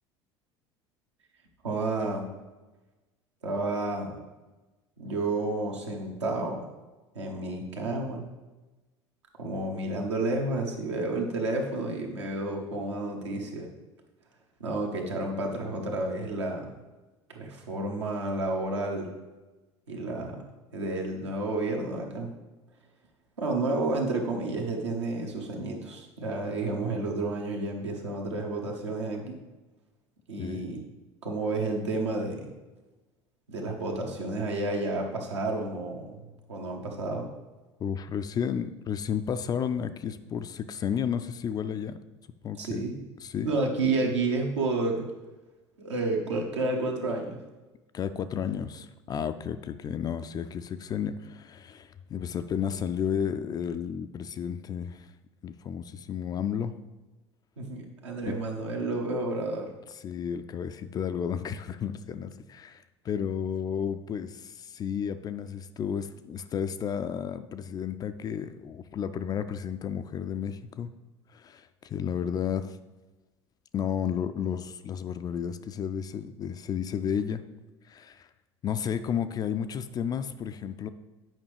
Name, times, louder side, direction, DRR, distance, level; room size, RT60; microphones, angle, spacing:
voice 1, 1.6-2.3 3.4-4.2 5.0-6.7 7.1-8.2 9.4-13.7 14.6-16.7 17.3-19.1 19.9-20.4 20.7-22.3 23.4-29.4 30.3-30.8 31.2-32.5 33.5-37.3 42.6-42.9 43.4-45.1 45.8-47.4 57.6-59.7, right 2 dB, 75° right, 0 dB, 1.2 m, -30 dB
voice 2, 37.8-42.0 42.4-42.8 43.2-43.5 47.9-55.1 55.4-56.7 58.2-58.4 60.0-70.9 71.3-72.8 73.7-77.4 77.8-78.3 78.6-80.9, left 8 dB, 25° left, 11 dB, 0.3 m, -32 dB
9.1 x 5.2 x 3.3 m, 1.2 s
figure-of-eight pair, 70°, 15 cm